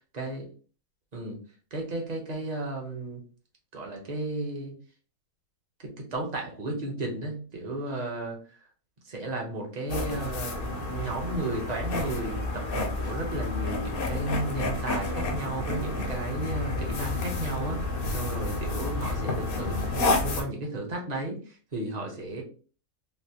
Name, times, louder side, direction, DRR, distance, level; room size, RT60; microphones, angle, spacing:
voice 1, 0.1-0.5 1.1-1.4 1.7-3.2 3.7-4.7 5.8-8.4 9.0-17.8 18.1-22.4, right 2 dB, 40° right, 0 dB, 0.7 m, -34 dB
sound 1, 9.9-20.4, left 2 dB, 60° left, 0.6 m, -30 dB
3.3 x 2.4 x 2.7 m, 0.38 s
omnidirectional pair, 1.6 m